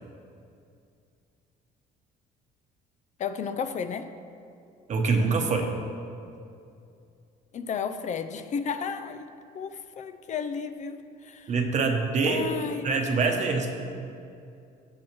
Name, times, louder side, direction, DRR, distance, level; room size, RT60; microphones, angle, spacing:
voice 1, 3.2-4.1 7.5-9.3 9.5-11.5 12.2-12.9, left 6 dB, 45° left, 10 dB, 0.5 m, -33 dB
voice 2, 4.9-5.7 11.5-12.4 12.8-13.7, right 4 dB, 45° right, 3 dB, 1.1 m, -24 dB
16.5 x 6.3 x 3.1 m, 2.5 s
cardioid pair, 110°, 17 cm